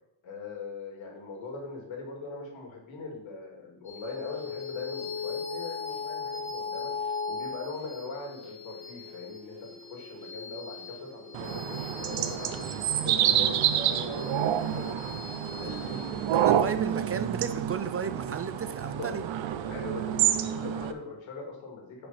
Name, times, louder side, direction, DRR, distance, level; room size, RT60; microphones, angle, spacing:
voice 1, 0.2-6.9 7.2-15.1 15.6-16.0 18.8-19.1 19.6-22.1, left 3 dB, 85° left, 0 dB, 2.6 m, -41 dB
sound 1, 3.9-18.6, left 5 dB, 15° left, 2.2 m, -39 dB
sound 2, 11.3-20.9, right 10 dB, 80° right, 0.8 m, -28 dB
voice 2, 15.6-19.3, right 6 dB, 30° right, 11 dB, 0.5 m, -34 dB
10.0 x 5.4 x 4.3 m, 0.85 s
cardioid pair, 120°, 45 cm